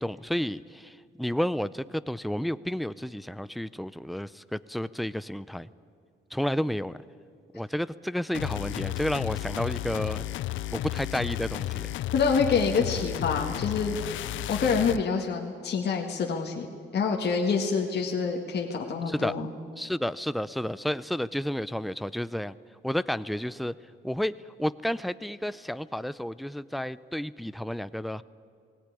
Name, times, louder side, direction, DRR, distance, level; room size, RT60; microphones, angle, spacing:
voice 1, 0.0-5.7 6.3-7.0 7.5-10.3 10.7-11.9 19.1-19.4 19.8-22.5 22.8-23.7 24.0-28.2, equal, ahead, 16 dB, 0.5 m, -31 dB
sound 1, 8.3-15.0, left 15 dB, 75° left, 0.5 m, -33 dB
voice 2, 12.1-14.0 14.5-16.7 16.9-19.5, left 5 dB, 55° left, 1 dB, 1.8 m, -26 dB
18.5 x 17.5 x 9.8 m, 2.3 s
cardioid pair, 90°, 20 cm